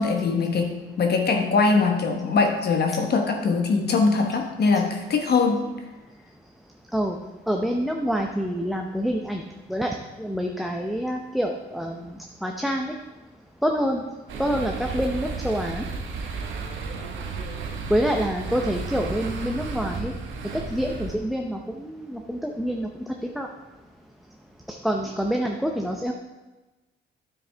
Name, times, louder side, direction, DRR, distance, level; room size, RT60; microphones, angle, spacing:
voice 1, 0.0-5.6, left 4 dB, 55° left, 4 dB, 1.1 m, -22 dB
voice 2, 7.5-9.4 9.7-12.1 12.4-12.9 13.6-14.0 14.4-15.9 17.9-20.1 20.5-22.9 23.2-23.5 24.8-26.1, equal, ahead, 1 dB, 0.7 m, -26 dB
sound 1, 14.3-21.2, right 4 dB, 80° right, 1.4 m, -33 dB
9.5 x 7.7 x 3.5 m, 1.1 s
cardioid pair, 90°, 20 cm